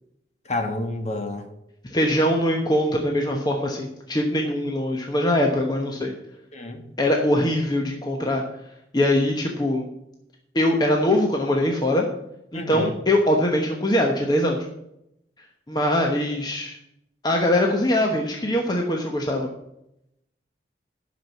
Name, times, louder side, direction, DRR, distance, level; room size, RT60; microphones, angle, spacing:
voice 1, 0.5-1.5 6.5-6.8 12.5-12.9, left 2 dB, 40° left, 5 dB, 1.4 m, -29 dB
voice 2, 1.9-6.1 7.0-8.4 8.9-9.9 10.5-12.1 12.5-14.6 15.7-16.8 17.2-19.5, left 1 dB, 25° left, 1 dB, 1.0 m, -22 dB
11.5 x 6.0 x 7.2 m, 0.82 s
head